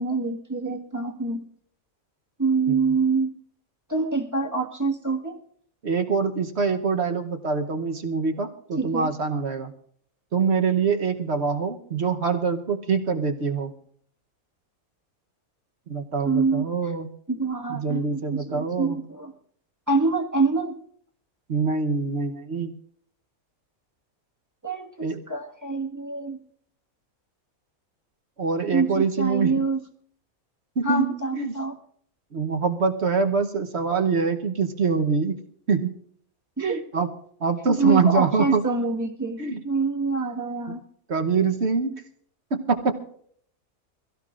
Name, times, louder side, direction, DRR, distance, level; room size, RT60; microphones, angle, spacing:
voice 1, 0.0-1.5 2.4-3.4 3.9-5.4 8.8-9.1 16.2-16.9 17.3-19.3 19.9-20.8 24.6-26.4 28.7-29.8 30.8-31.8 36.6-36.8 37.8-40.9, right 4 dB, 10° right, 1 dB, 1.6 m, -26 dB
voice 2, 5.8-9.7 10.3-13.7 15.9-17.1 17.7-19.0 21.5-22.7 25.0-25.2 28.4-29.6 30.8-31.6 32.3-35.4 35.7-35.9 36.6-37.1 37.4-38.6 39.4-39.6 40.7-40.8 41.1-41.9 42.5-43.0, right 5 dB, 50° right, 5 dB, 1.2 m, -24 dB
24.0 x 16.5 x 2.5 m, 0.62 s
omnidirectional pair, 1.5 m